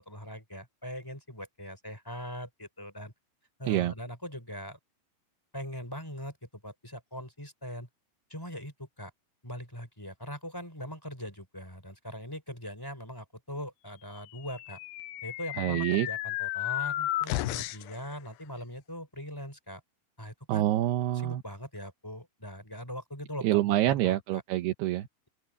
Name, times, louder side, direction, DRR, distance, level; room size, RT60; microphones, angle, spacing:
voice 1, 0.0-3.1 3.6-4.8 5.5-7.9 8.3-9.1 9.4-14.8 15.2-19.8 20.2-20.7 21.1-24.4, equal, 5° left, 4.5 m, -41 dB
sound 1, 14.4-18.0, left 15 dB, 90° left, 2.9 m, -33 dB
voice 2, 15.6-16.1 20.5-21.4 23.4-25.1, right 14 dB, 80° right, 3.1 m, -26 dB
omnidirectional pair, 4.7 m